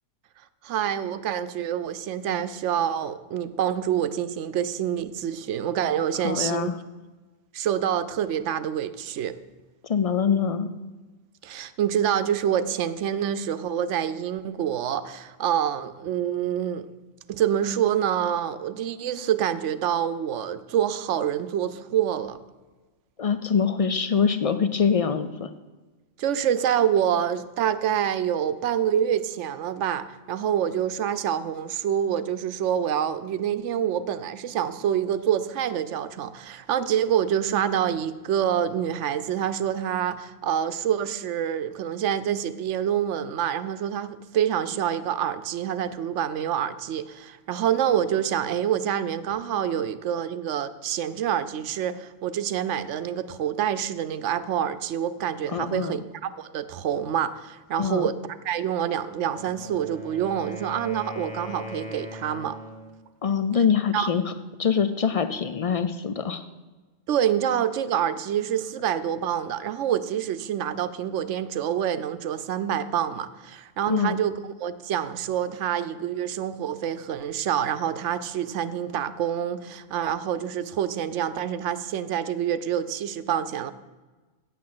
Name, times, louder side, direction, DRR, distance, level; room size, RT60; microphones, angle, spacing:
voice 1, 0.6-6.7 7.5-9.4 11.4-16.9 17.3-22.4 26.2-56.0 56.3-58.2 58.4-62.6 63.9-64.1 67.1-74.3 74.6-83.7, right 9 dB, 80° right, 13 dB, 0.9 m, -26 dB
voice 2, 6.2-6.7 9.8-10.7 23.2-25.5 55.5-56.0 57.8-58.1 63.2-64.3 64.6-66.4 73.9-74.2, left 6 dB, 65° left, 10 dB, 0.3 m, -24 dB
Wind instrument woodwind instrument, 59.1-62.9, left 1 dB, 5° left, 2.0 m, -40 dB
8.5 x 7.6 x 7.6 m, 1.3 s
omnidirectional pair, 1.2 m